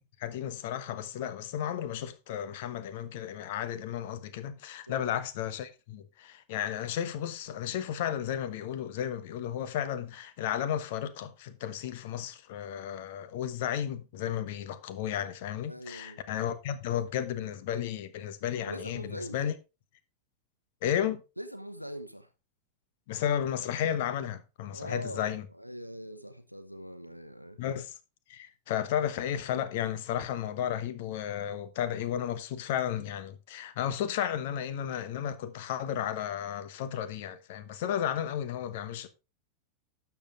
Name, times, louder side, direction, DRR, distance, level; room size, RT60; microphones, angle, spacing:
voice 1, 0.2-19.5 20.8-21.2 23.1-25.4 27.6-27.9 28.3-39.1, left 10 dB, 50° left, 1.1 m, -33 dB
voice 2, 4.9-5.2 15.7-16.2 18.7-19.5 21.4-22.3 24.7-27.6, equal, 90° right, 0.9 m, -42 dB
12.0 x 7.1 x 3.6 m
figure-of-eight pair, 90°, 0 cm